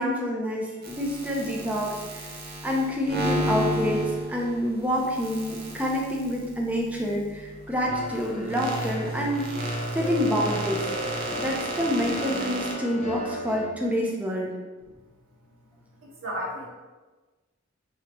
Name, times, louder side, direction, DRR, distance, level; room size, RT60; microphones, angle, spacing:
voice 1, 0.0-2.3 2.6-9.4 9.9-10.8 11.4-14.5, equal, 5° right, -2 dB, 0.6 m, -27 dB
sound 1, 0.8-12.7, equal, 50° right, 0.7 m, -33 dB
sound 2, 7.9-13.7, equal, 35° left, 0.6 m, -34 dB
voice 2, 16.0-16.6, equal, 85° right, -5 dB, 1.3 m, -33 dB
4.8 x 2.9 x 3.0 m, 1.2 s
head